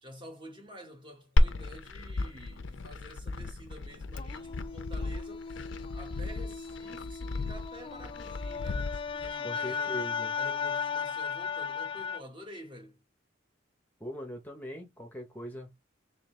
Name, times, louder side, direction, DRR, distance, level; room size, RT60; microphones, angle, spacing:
voice 1, 0.0-5.7 5.9-10.0 10.4-13.0, equal, 25° right, 1.3 m, -49 dB
Glass, 1.4-9.3, left 1 dB, 75° left, 0.5 m, -32 dB
sound 1, 4.2-12.2, left 6 dB, 25° left, 0.3 m, -36 dB
voice 2, 9.4-10.3 14.0-15.8, equal, 10° left, 0.8 m, -41 dB
3.8 x 3.2 x 3.1 m
head